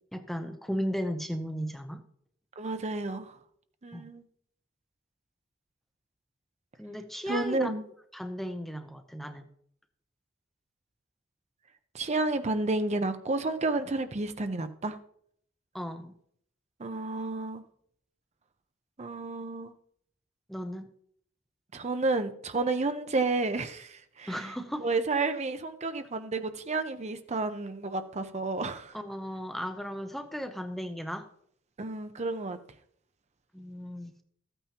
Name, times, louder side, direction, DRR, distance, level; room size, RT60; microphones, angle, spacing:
voice 1, 0.1-2.0 3.9-4.1 6.8-7.7 8.1-9.5 15.7-16.1 20.5-20.9 24.3-24.9 28.9-31.3 33.5-34.1, equal, ahead, 0.7 m, -35 dB
voice 2, 2.6-3.4 3.8-4.2 7.3-7.8 11.9-15.0 16.8-17.6 19.0-19.7 21.7-24.5 24.8-28.9 31.8-32.6, right 3 dB, 35° right, 0.6 m, -31 dB
14.0 x 9.0 x 2.9 m
head